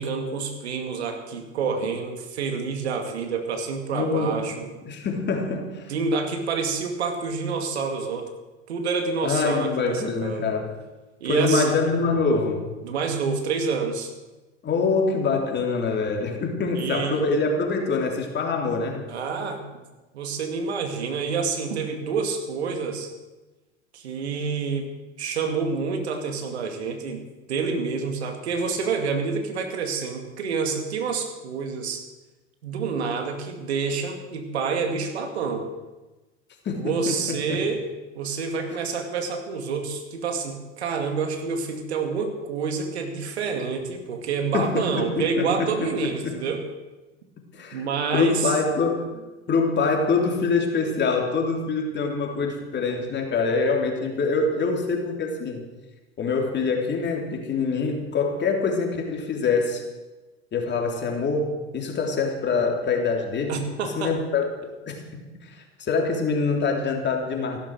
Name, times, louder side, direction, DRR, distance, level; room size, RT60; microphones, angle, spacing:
voice 1, 0.0-4.7 5.9-8.3 8.7-10.5 11.2-11.7 12.8-14.1 16.7-17.2 19.1-19.8 20.1-23.1 23.9-24.9 25.2-32.0 32.6-35.7 36.8-37.8 38.2-46.6 47.7-48.5 63.5-64.1, right 5 dB, 75° right, 5 dB, 2.4 m, -28 dB
voice 2, 3.9-4.5 4.8-5.9 9.2-10.7 11.3-12.7 14.6-19.0 36.7-37.6 38.7-38.8 44.5-46.4 47.5-47.8 48.1-55.6 56.2-59.8 60.5-63.6 64.0-67.6, left 4 dB, 35° left, 2 dB, 3.5 m, -25 dB
15.0 x 12.0 x 6.5 m, 1.2 s
hypercardioid pair, 80°, 33 cm